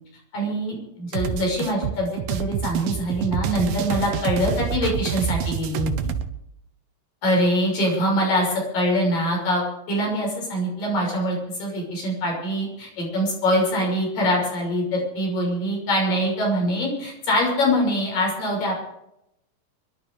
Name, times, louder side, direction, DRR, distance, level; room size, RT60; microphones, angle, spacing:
voice 1, 0.3-6.1 7.2-18.8, equal, 70° left, -1 dB, 8.0 m, -24 dB
sound 1, 1.1-6.3, right 9 dB, 85° right, 2.9 m, -27 dB
24.5 x 11.5 x 5.0 m, 0.81 s
omnidirectional pair, 4.1 m